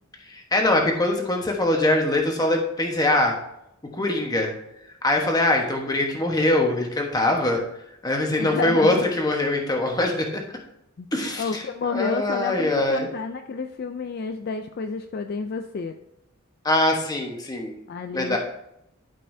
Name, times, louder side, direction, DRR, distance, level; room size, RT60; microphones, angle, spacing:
voice 1, 0.3-3.4 3.9-4.5 5.0-7.6 8.0-10.4 11.1-11.6 11.9-13.1 16.6-17.7 18.1-18.4, left 1 dB, 20° left, 2 dB, 1.1 m, -22 dB
voice 2, 8.4-9.1 11.0-11.1 11.4-15.9 17.9-18.4, left 5 dB, 50° left, 7 dB, 0.4 m, -30 dB
12.0 x 5.4 x 2.7 m, 0.82 s
head